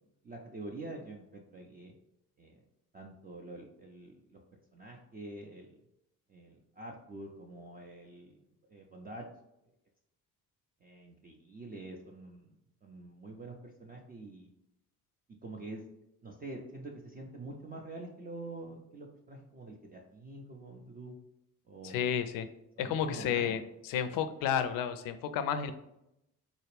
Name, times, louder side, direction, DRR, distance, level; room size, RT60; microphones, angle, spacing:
voice 1, 0.2-1.9 2.4-2.6 2.9-4.4 4.7-5.7 6.3-8.4 8.7-9.2 10.8-12.5 12.8-14.5 15.4-15.8 16.2-21.2 21.7-22.1 22.8-23.6, right 2 dB, 20° right, 0 dB, 0.4 m, -46 dB
voice 2, 21.8-22.5 22.8-25.7, left 8 dB, 50° left, 11 dB, 0.5 m, -32 dB
3.9 x 2.4 x 3.2 m, 0.85 s
figure-of-eight pair, 40°, 45 cm